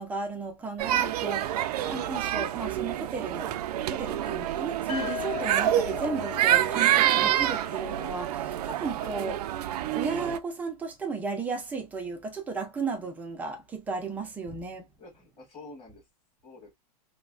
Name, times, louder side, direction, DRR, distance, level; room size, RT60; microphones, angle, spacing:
voice 1, 0.0-3.6 3.9-9.4 10.0-14.9, right 4 dB, 10° right, 0.4 m, -34 dB
sound 1, 0.8-10.4, right 12 dB, 75° right, 0.4 m, -27 dB
sound 2, 4.9-8.8, left 9 dB, 80° left, 1.3 m, -39 dB
voice 2, 15.0-16.0 16.4-16.7, left 2 dB, 25° left, 1.8 m, -48 dB
3.1 x 2.2 x 2.4 m
supercardioid pair, 160°, 20 cm